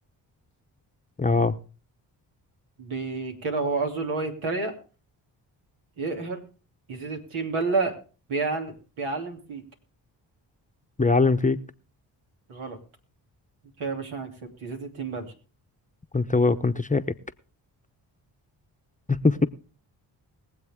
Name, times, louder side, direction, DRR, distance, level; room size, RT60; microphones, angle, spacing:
voice 1, 1.2-1.6 11.0-11.6 16.1-17.0 19.2-19.5, left 3 dB, 15° left, 8 dB, 0.9 m, -21 dB
voice 2, 2.8-4.7 6.0-6.4 6.9-7.9 8.3-9.6 12.5-12.8 13.8-14.3 14.6-15.3, right 3 dB, 75° right, 2 dB, 3.1 m, -29 dB
21.5 x 7.9 x 3.7 m, 0.36 s
supercardioid pair, 40°, 48 cm